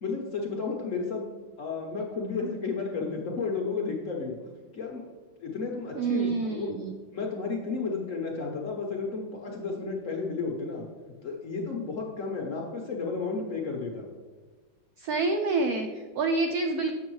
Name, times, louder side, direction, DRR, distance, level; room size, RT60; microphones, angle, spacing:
voice 1, 0.0-1.3 1.6-5.0 5.4-6.7 7.1-14.1, left 4 dB, 60° left, 0 dB, 0.8 m, -32 dB
voice 2, 5.9-6.9 15.0-17.0, right 3 dB, 90° right, 5 dB, 0.8 m, -27 dB
7.6 x 6.7 x 3.1 m, 1.4 s
omnidirectional pair, 2.2 m